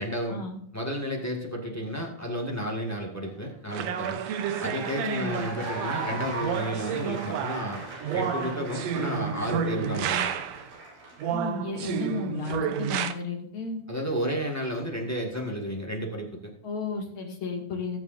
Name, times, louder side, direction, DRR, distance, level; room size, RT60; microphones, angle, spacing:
voice 1, 0.0-0.4 0.7-4.2 4.6-7.8 8.1-10.3 13.9-16.5, equal, 15° left, 0 dB, 0.6 m, -32 dB
sound 1, 3.2-11.3, right 2 dB, 85° right, 4.9 m, -39 dB
sound 2, 3.7-10.7 11.2-13.1, right 8 dB, 70° right, 1.7 m, -31 dB
voice 2, 5.0-5.3 11.3-13.8 16.6-18.0, left 3 dB, 45° left, 0 dB, 2.7 m, -33 dB
19.0 x 7.5 x 2.6 m, 0.68 s
omnidirectional pair, 3.6 m